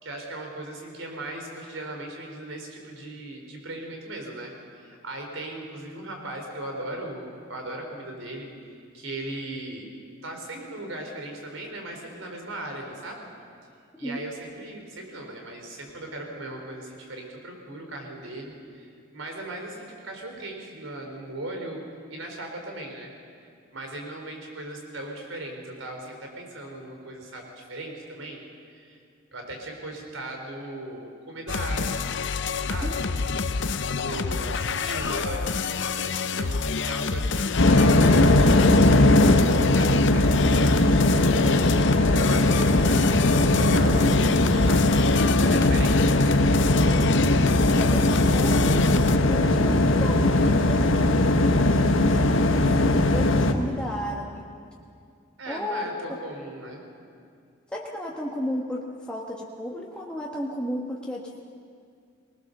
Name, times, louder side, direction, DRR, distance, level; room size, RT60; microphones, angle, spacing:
voice 1, 0.0-9.9 10.2-13.3 14.0-21.8 22.1-23.1 23.7-28.5 28.7-29.0 29.3-32.1 32.6-33.1 33.8-39.1 39.5-41.5 42.0-45.1 45.4-46.3 55.4-56.8, right 1 dB, 85° right, 2 dB, 3.9 m, -38 dB
sound 1, 31.5-49.2, left 4 dB, 65° left, 0.6 m, -28 dB
sound 2, 37.6-53.5, left 1 dB, 80° left, 1.2 m, -19 dB
voice 2, 47.8-49.0 49.3-50.2 50.6-54.4 55.5-56.2 57.7-61.4, equal, 5° left, -4 dB, 1.4 m, -33 dB
20.0 x 20.0 x 6.7 m, 2.3 s
head